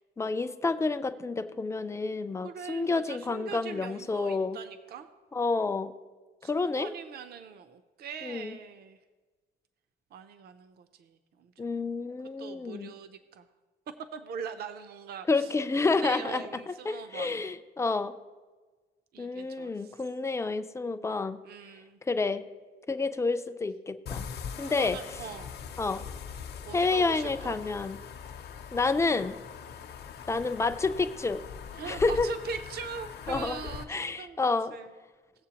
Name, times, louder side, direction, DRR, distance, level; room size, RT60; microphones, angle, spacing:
voice 1, 0.2-4.6 5.3-5.9 6.4-6.9 8.2-8.6 11.6-12.9 15.3-18.2 19.2-21.4 22.1-22.4 22.9-24.3 24.6-25.0 25.8-26.1 26.7-28.0 28.7-29.4 30.3-31.4 31.9-32.3 33.3-33.6 33.9-34.7, left 3 dB, 15° left, 10 dB, 0.3 m, -29 dB
voice 2, 2.4-5.1 6.4-9.0 10.1-11.5 12.4-13.5 14.1-15.5 15.8-17.4 19.1-20.0 21.4-22.0 24.6-25.5 26.7-27.6 31.7-35.0, right 6 dB, 50° right, 9 dB, 0.5 m, -42 dB
sound 1, 24.1-33.8, left 7 dB, 55° left, 0.7 m, -42 dB
18.0 x 7.5 x 2.9 m, 1.4 s
cardioid pair, 170°, 21 cm